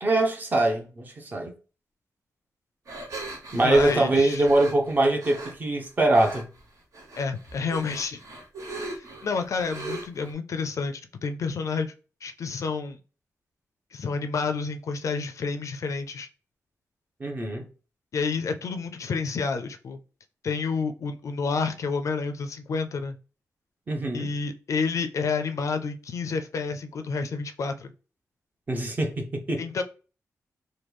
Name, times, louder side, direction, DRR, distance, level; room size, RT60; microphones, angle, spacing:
voice 1, 0.0-1.5 3.5-6.5 17.2-17.7 23.9-24.3 28.7-29.6, right 2 dB, 30° right, 0.7 m, -23 dB
sound 1, 2.9-5.5 6.1-6.6 6.9-10.3, right 2 dB, 65° right, 1.1 m, -39 dB
voice 2, 3.6-4.5 7.2-8.2 9.0-11.9 12.2-13.0 13.9-16.3 18.1-20.0 20.4-23.2 24.1-27.9 29.6-29.8, left 4 dB, 60° left, 0.4 m, -29 dB
3.1 x 2.2 x 3.4 m
wide cardioid pair, 170°, 6 cm